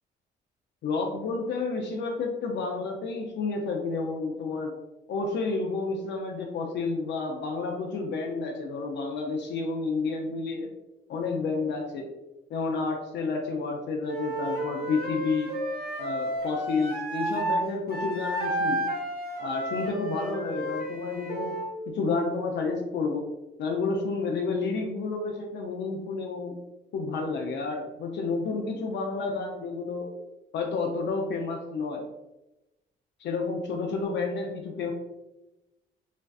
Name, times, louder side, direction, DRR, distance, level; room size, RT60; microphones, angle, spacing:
voice 1, 0.8-4.7 5.1-10.7 11.1-12.1 12.5-15.5 16.0-18.8 19.4-21.5 21.9-23.3 23.6-26.5 26.9-30.1 30.5-32.1 33.2-34.9, left 4 dB, 65° left, 2 dB, 0.4 m, -30 dB
Wind instrument woodwind instrument, 14.1-17.6 17.9-21.7, right 1 dB, 50° right, 0.8 m, -31 dB
2.5 x 2.2 x 2.3 m, 0.96 s
cardioid pair, 90°, 20 cm